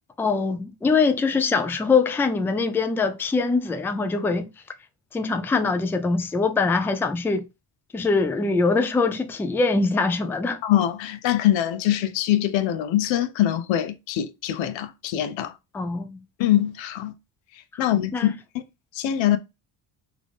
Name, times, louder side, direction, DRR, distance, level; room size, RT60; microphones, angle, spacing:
voice 1, 0.2-4.5 5.1-7.5 7.9-10.6 15.7-16.2 17.7-18.3, left 4 dB, 5° left, 0.3 m, -23 dB
voice 2, 10.6-15.5 16.4-17.1 17.8-18.3 18.5-18.6 18.9-19.4, left 12 dB, 85° left, 0.6 m, -23 dB
3.6 x 2.5 x 3.3 m
cardioid pair, 95°, 45 cm